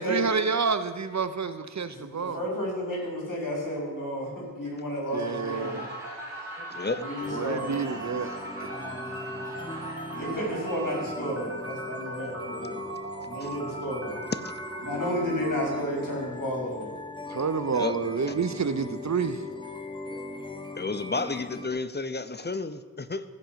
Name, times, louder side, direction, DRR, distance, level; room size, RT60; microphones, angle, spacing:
voice 1, 0.0-2.4 5.1-5.9 7.3-8.7 17.3-19.4, right 5 dB, 55° right, 11 dB, 0.7 m, -29 dB
voice 2, 1.9-5.9 7.0-7.7 10.0-12.9 13.2-14.3 14.8-16.9, equal, 70° left, -2 dB, 4.2 m, -32 dB
Laughter / Crowd, 5.1-11.3, equal, 5° right, 3.9 m, -45 dB
sound 1, 5.2-15.8, right 2 dB, 40° right, 1.5 m, -39 dB
voice 3, 6.6-7.0 13.4-13.5 14.3-14.4 17.3-17.5 17.7-17.9 18.3-18.4 20.1-20.2 20.7-23.2, left 3 dB, 30° left, 11 dB, 0.7 m, -32 dB
sound 2, 7.2-21.7, left 2 dB, 15° left, 1.2 m, -39 dB
15.0 x 5.1 x 7.4 m, 1.4 s
wide cardioid pair, 45°, 33 cm